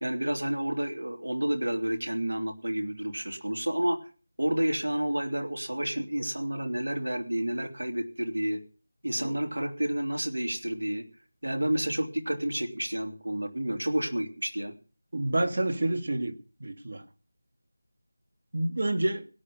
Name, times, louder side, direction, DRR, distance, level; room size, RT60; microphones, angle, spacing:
voice 1, 0.0-4.0 4.4-8.6 9.0-11.0 11.4-14.7, right 1 dB, 80° right, 4 dB, 2.9 m, -30 dB
voice 2, 15.1-16.4 16.6-17.0 18.5-19.3, right 1 dB, 55° right, 8 dB, 1.9 m, -28 dB
17.0 x 10.0 x 5.4 m, 0.38 s
figure-of-eight pair, 170°, 0 cm